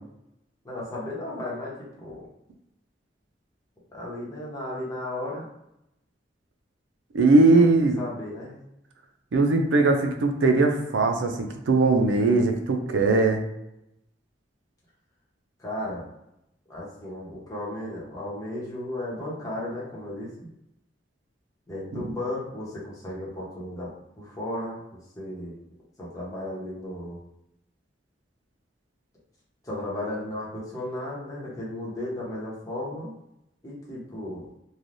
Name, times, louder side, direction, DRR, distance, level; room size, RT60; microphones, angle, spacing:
voice 1, 0.6-2.3 3.9-5.5 7.5-7.6 8.0-8.6 15.6-16.1 16.7-20.5 21.7-23.9 24.2-25.5 26.0-27.2 29.6-33.1 33.6-34.5, left 1 dB, 20° left, -6 dB, 0.9 m, -34 dB
voice 2, 7.1-8.0 9.3-13.4 21.9-22.0, right 3 dB, 85° right, 4 dB, 0.5 m, -20 dB
3.2 x 2.3 x 2.5 m, 0.84 s
head